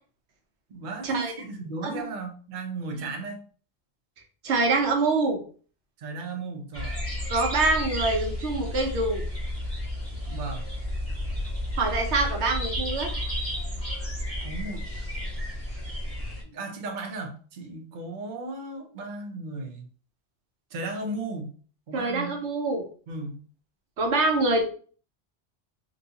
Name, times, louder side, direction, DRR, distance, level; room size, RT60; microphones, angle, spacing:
voice 1, 0.7-3.4 6.0-6.9 10.3-10.6 14.4-14.9 16.4-19.9 20.7-21.5 21.9-22.4 23.1-23.4, right 3 dB, 50° right, 2 dB, 0.7 m, -35 dB
voice 2, 4.4-5.4 7.3-9.2 11.8-13.1 21.9-22.8 24.0-24.6, right 3 dB, 80° right, 2 dB, 1.1 m, -25 dB
sound 1, 6.7-16.4, left 1 dB, 15° left, 1.1 m, -32 dB
3.9 x 2.3 x 2.7 m, 0.41 s
omnidirectional pair, 1.1 m